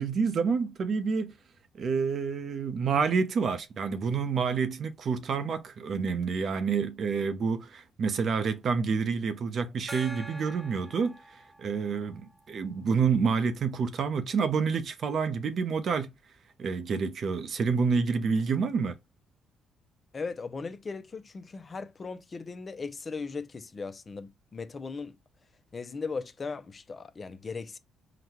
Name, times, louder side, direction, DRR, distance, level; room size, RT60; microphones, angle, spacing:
voice 1, 0.0-1.4 1.7-16.1 16.6-19.0, right 5 dB, 55° right, 0.6 m, -28 dB
Gong, 9.9-13.1, right 1 dB, 10° right, 0.7 m, -46 dB
voice 2, 20.1-25.2 25.7-27.8, left 4 dB, 35° left, 0.5 m, -38 dB
3.9 x 2.2 x 2.9 m
cardioid pair, 90°, 0 cm